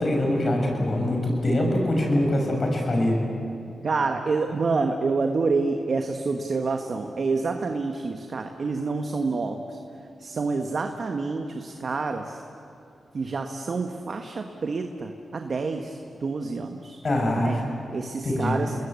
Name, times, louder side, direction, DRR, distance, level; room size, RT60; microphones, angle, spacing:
voice 1, 0.0-3.2 17.0-17.6 18.2-18.6, left 1 dB, 55° left, 1 dB, 7.2 m, -23 dB
voice 2, 3.8-9.8 10.2-12.4 13.1-17.0 17.4-17.6 17.9-18.7, right 4 dB, 60° right, 5 dB, 1.5 m, -28 dB
28.0 x 20.5 x 8.3 m, 2.7 s
supercardioid pair, 40°, 0 cm